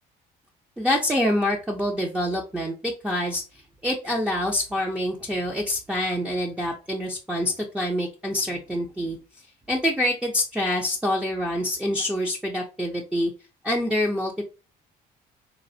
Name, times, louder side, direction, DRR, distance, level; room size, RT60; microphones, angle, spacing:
voice 1, 0.8-9.2 9.7-13.3 13.6-14.5, left 1 dB, 5° right, 0 dB, 0.5 m, -26 dB
4.1 x 2.0 x 2.6 m, 0.32 s
cardioid pair, 110°, 17 cm